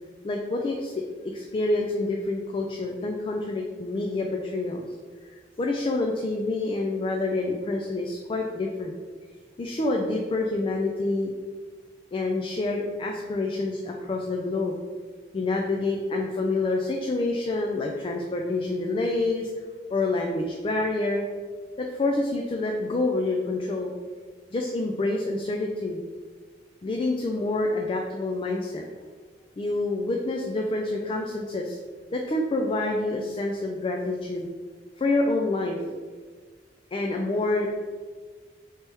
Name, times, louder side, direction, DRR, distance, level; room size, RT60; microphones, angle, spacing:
voice 1, 0.2-1.0 1.3-4.9 5.3-8.9 9.6-11.3 12.1-14.8 15.3-19.5 19.9-21.2 21.8-23.9 24.5-26.0 26.8-28.8 29.6-31.8 32.1-34.5 35.0-35.8 36.9-37.7, left 2 dB, 30° left, 1 dB, 0.3 m, -27 dB
3.3 x 2.9 x 4.5 m, 1.5 s
head